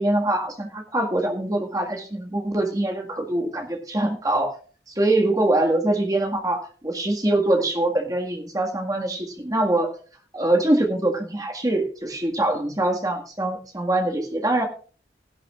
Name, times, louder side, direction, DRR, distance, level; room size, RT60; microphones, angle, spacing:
voice 1, 0.0-4.5 4.9-10.0 10.3-14.7, right 1 dB, 20° right, 2 dB, 1.8 m, -23 dB
16.5 x 11.0 x 2.4 m, 0.39 s
head